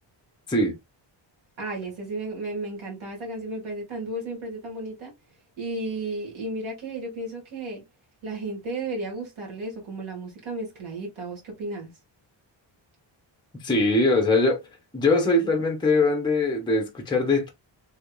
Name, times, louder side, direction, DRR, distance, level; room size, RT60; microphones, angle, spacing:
voice 1, 1.6-5.1 5.6-7.8 8.2-11.9, right 2 dB, 85° right, 1.8 m, -33 dB
voice 2, 13.6-14.6 14.9-17.5, left 2 dB, 10° left, 0.8 m, -22 dB
3.5 x 3.4 x 2.3 m
wide cardioid pair, 160°, 46 cm